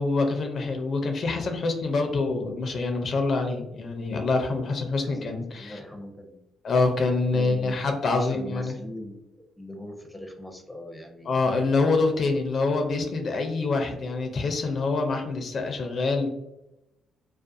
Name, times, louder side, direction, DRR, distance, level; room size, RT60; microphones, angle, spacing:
voice 1, 0.0-5.8 6.6-8.8 11.3-16.3, left 3 dB, 55° left, 4 dB, 0.4 m, -26 dB
voice 2, 5.0-6.4 7.3-9.3 9.6-11.5, left 1 dB, ahead, 3 dB, 0.5 m, -41 dB
2.4 x 2.2 x 2.5 m, 0.91 s
cardioid pair, 90°, 0 cm